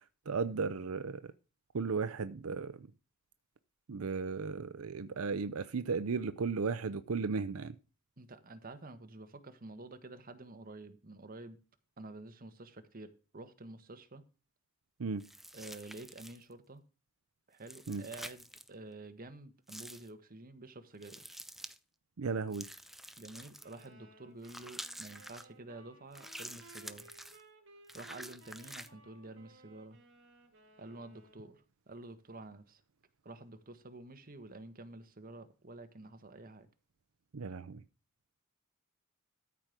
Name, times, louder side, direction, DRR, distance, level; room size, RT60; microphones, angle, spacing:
voice 1, 0.3-1.2 1.7-2.9 3.9-7.8 15.0-15.2 17.9-18.0 22.2-22.7 37.3-37.8, right 4 dB, 80° right, 0.6 m, -35 dB
voice 2, 8.2-11.6 12.0-14.2 15.5-16.8 17.5-21.4 23.2-27.1 27.9-30.0 30.8-32.8 33.2-36.7, right 2 dB, 40° right, 1.4 m, -49 dB
sound 1, 15.2-16.5 17.6-18.7 19.7-20.1 21.0-21.8 22.5-23.9 24.4-25.5 26.1-27.4 27.9-28.9, equal, ahead, 0.6 m, -48 dB
sound 2, 23.6-31.6, right 2 dB, 60° right, 2.8 m, -60 dB
13.5 x 5.1 x 6.0 m
head